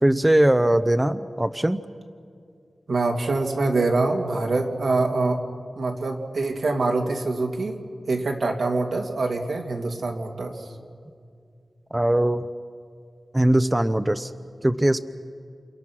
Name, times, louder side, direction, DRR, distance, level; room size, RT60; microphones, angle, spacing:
voice 1, 0.0-1.8 11.9-12.5 13.3-14.3 14.6-15.0, right 1 dB, 15° right, 10 dB, 0.6 m, -20 dB
voice 2, 2.9-5.4 5.8-7.8 8.1-10.6, right 3 dB, 80° right, 1 dB, 2.6 m, -24 dB
28.5 x 28.5 x 6.2 m, 2.3 s
wide cardioid pair, 105°, 0 cm